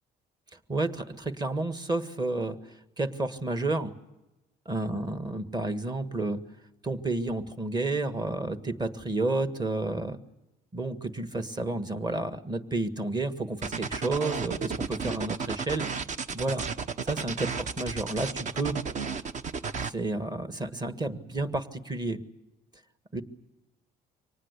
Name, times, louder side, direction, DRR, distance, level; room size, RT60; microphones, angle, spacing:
voice 1, 0.7-2.6 3.0-3.9 4.6-6.4 6.8-10.2 10.7-15.9 16.3-16.6 17.1-18.7 19.8-22.2 23.1-23.2, right 2 dB, 25° right, 9 dB, 1.6 m, -31 dB
sound 1, 13.6-19.9, right 5 dB, 45° right, 1.1 m, -33 dB
24.5 x 19.0 x 8.2 m, 0.99 s
cardioid pair, 110°, 17 cm